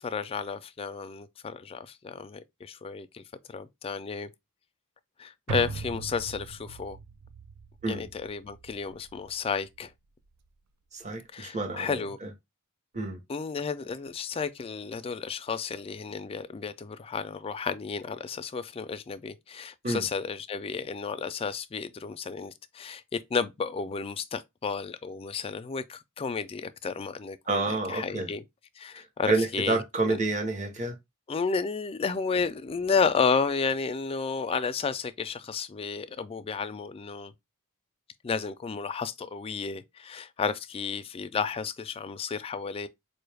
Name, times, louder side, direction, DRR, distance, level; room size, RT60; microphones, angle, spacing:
voice 1, 0.0-3.2 3.5-4.3 5.2-7.0 7.9-9.9 11.3-12.2 13.3-28.4 28.8-29.8 30.1-30.2 31.3-37.3 38.2-42.9, left 5 dB, 25° left, 0.3 m, -32 dB
sound 1, 5.5-9.9 10.3-10.4, right 4 dB, 85° right, 0.4 m, -40 dB
voice 2, 10.9-12.3 12.9-13.2 19.8-20.0 27.5-28.3 29.3-30.9, right 2 dB, 30° right, 0.8 m, -29 dB
4.4 x 2.3 x 3.3 m
head